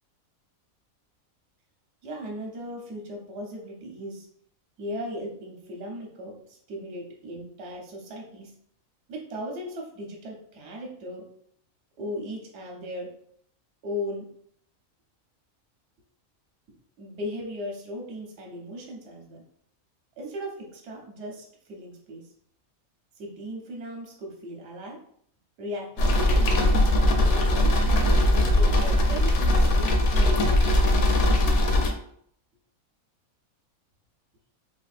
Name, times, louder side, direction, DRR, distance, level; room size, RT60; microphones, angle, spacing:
voice 1, 2.0-4.3 4.8-8.5 9.1-11.2 12.0-13.1 13.8-14.3 16.7-19.4 20.2-22.3 23.2-25.0 25.6-26.7 27.2-31.4, equal, 55° right, 0 dB, 1.0 m, -37 dB
sound 1, 26.0-31.9, left 1 dB, 65° left, 0.8 m, -20 dB
3.5 x 2.6 x 2.4 m, 0.66 s
omnidirectional pair, 1.5 m